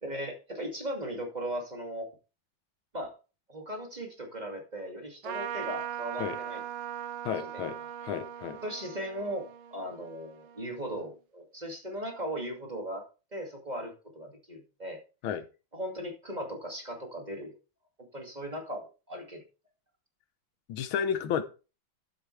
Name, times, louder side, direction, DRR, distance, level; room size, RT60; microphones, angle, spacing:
voice 1, 0.0-2.1 2.9-3.1 3.5-6.6 7.5-7.7 8.6-13.0 13.3-15.0 15.7-17.6 18.1-19.4, equal, 20° right, 2.3 m, -38 dB
Trumpet, 5.2-11.1, right 9 dB, 85° right, 1.7 m, -40 dB
voice 2, 7.2-7.8 8.0-8.6 15.2-15.4 20.7-21.4, left 8 dB, 85° left, 1.7 m, -31 dB
12.0 x 8.0 x 3.3 m
omnidirectional pair, 2.2 m